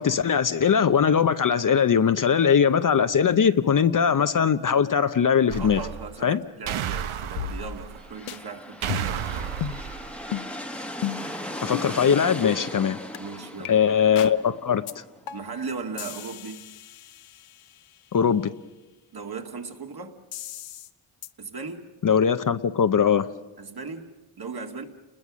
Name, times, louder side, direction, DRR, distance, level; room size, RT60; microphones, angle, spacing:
voice 1, 0.0-5.8 6.2-6.4 11.6-13.0 13.7-14.8 18.1-18.5 22.0-23.3, left 7 dB, 40° left, 11 dB, 0.7 m, -21 dB
sound 1, 5.5-6.2 6.7-8.1 8.8-10.2, right 9 dB, 70° right, 1.1 m, -32 dB
voice 2, 5.6-9.5 13.2-13.7 15.3-16.7 19.1-20.2 21.4-21.9 23.6-24.8, right 4 dB, 45° right, 4 dB, 2.3 m, -37 dB
sound 2, 7.4-8.0 8.3-8.4 8.9-9.3 9.6-9.8 10.3-10.5 11.0-11.3 11.7-11.9 12.4-12.6 13.1-13.2 13.6-13.7 14.2-14.4 14.9-15.0 15.3-15.6 16.0-17.8 20.3-20.9 21.2-21.3, left 11 dB, 75° left, 0.9 m, -34 dB
sound 3, 7.8-15.5, equal, ahead, 1.3 m, -38 dB
29.5 x 21.0 x 6.2 m, 1.1 s
cardioid pair, 100°, 50 cm